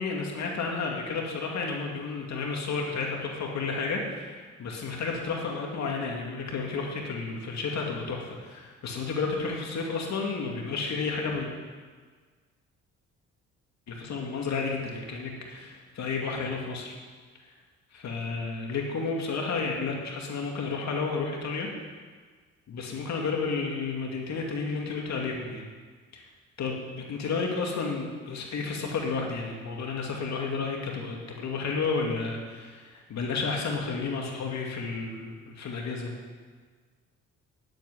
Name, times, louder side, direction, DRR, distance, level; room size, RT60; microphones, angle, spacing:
voice 1, 0.0-11.5 13.9-17.0 17.5-17.6 17.9-21.7 22.7-25.7 26.1-26.2 26.6-36.1, left 4 dB, 65° left, 0 dB, 2.4 m, -32 dB
9.8 x 9.1 x 9.7 m, 1.5 s
cardioid pair, 90°, 30 cm